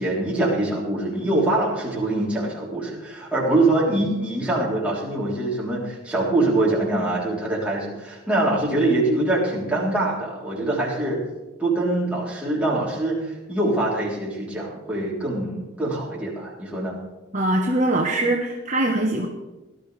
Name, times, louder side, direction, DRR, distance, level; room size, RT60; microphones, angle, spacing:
voice 1, 0.0-11.2 11.6-17.0, right 2 dB, 5° right, -6 dB, 3.5 m, -24 dB
voice 2, 17.3-19.3, right 1 dB, 40° right, -1 dB, 1.3 m, -22 dB
18.5 x 12.5 x 3.4 m, 1.1 s
head